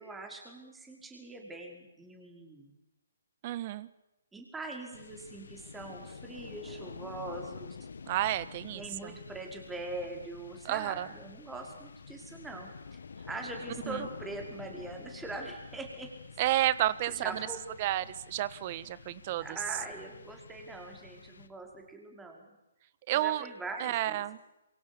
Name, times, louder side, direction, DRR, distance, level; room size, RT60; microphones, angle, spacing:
voice 1, 0.0-2.7 4.3-7.8 8.7-12.7 13.3-16.1 17.1-17.6 19.4-22.6 23.1-24.2, right 2 dB, 10° right, 2 dB, 5.3 m, -42 dB
voice 2, 3.4-3.9 8.1-9.2 10.6-11.1 13.9-14.1 16.4-17.5 17.8-19.6 23.1-23.5 23.8-24.4, right 14 dB, 35° right, 17 dB, 1.4 m, -31 dB
sound 1, 4.9-21.9, left 5 dB, 75° left, 1.6 m, -48 dB
27.5 x 24.5 x 7.2 m, 0.96 s
hypercardioid pair, 150°, 0 cm